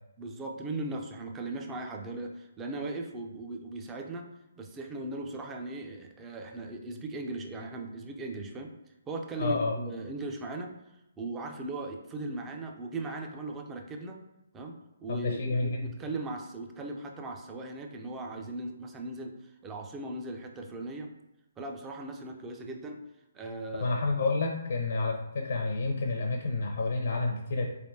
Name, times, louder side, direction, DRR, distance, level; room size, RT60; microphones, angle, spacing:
voice 1, 0.2-4.3 4.6-8.7 9.1-10.7 11.2-14.2 14.5-14.7 15.0-21.1 21.6-23.0 23.3-23.9, right 2 dB, 15° right, 2 dB, 0.5 m, -38 dB
voice 2, 9.4-9.7 15.1-15.9 23.8-27.7, left 3 dB, 60° left, 2 dB, 0.7 m, -29 dB
4.3 x 3.4 x 2.7 m, 0.93 s
figure-of-eight pair, 135°, 0 cm